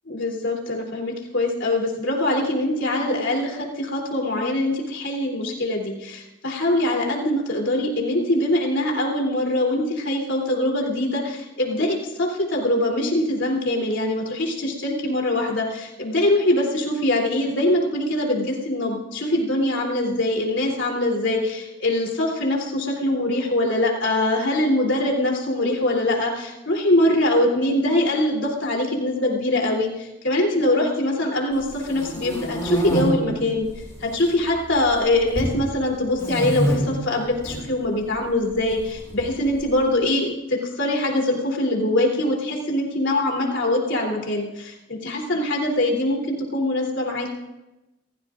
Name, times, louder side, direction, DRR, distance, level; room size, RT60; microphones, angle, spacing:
voice 1, 0.1-33.7 34.0-47.3, left 1 dB, 85° left, 0 dB, 3.4 m, -23 dB
sound 1, 31.6-33.0 33.7-34.3 34.6-35.5 36.1-36.8 37.3-37.6 38.7-39.6, right 1 dB, 15° left, 7.3 m, -27 dB
28.5 x 15.0 x 2.6 m, 0.99 s
head